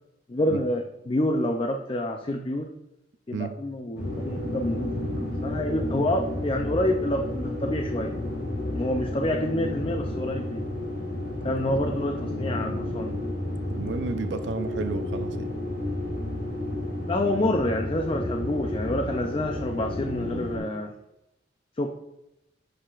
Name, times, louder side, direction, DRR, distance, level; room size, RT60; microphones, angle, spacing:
voice 1, 0.3-2.7 3.3-8.1 8.7-10.6 11.4-13.1 17.1-20.9 21.8-21.9, left 1 dB, 30° left, 4 dB, 0.4 m, -28 dB
sound 1, 4.0-20.6, left 1 dB, 55° left, 2.1 m, -31 dB
voice 2, 13.7-15.5, right 4 dB, 65° right, 10 dB, 0.5 m, -32 dB
11.5 x 4.9 x 2.4 m, 0.90 s
head